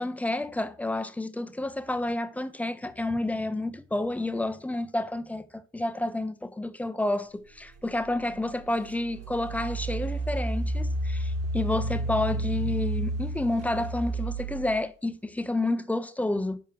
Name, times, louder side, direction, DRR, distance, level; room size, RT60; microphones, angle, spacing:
voice 1, 0.0-16.6, left 2 dB, 5° left, 0.3 m, -30 dB
Engine, 8.1-8.2 8.9-14.8, right 2 dB, 30° right, 1.1 m, -31 dB
6.9 x 5.4 x 6.0 m
figure-of-eight pair, 65°, 46 cm